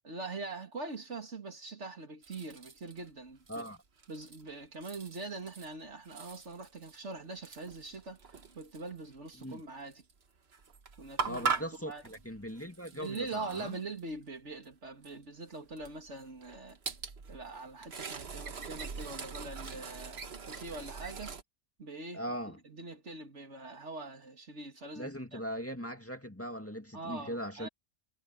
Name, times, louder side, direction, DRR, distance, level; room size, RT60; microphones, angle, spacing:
voice 1, 0.0-3.7 4.1-10.0 11.0-11.5 11.8-12.0 12.9-16.8 17.3-21.3 21.8-25.4 26.9-27.7, right 3 dB, 90° right, 2.8 m, -43 dB
sound 1, 2.2-3.1 3.5-4.5 4.7-5.7 6.1-9.5 9.9-10.1 10.5-14.2 14.6-14.7 15.0-15.1 15.7-21.4, right 5 dB, 65° right, 1.6 m, -41 dB
voice 2, 11.2-13.8 22.1-22.6 25.0-27.7, equal, 10° left, 1.9 m, -40 dB
omnidirectional pair, 1.2 m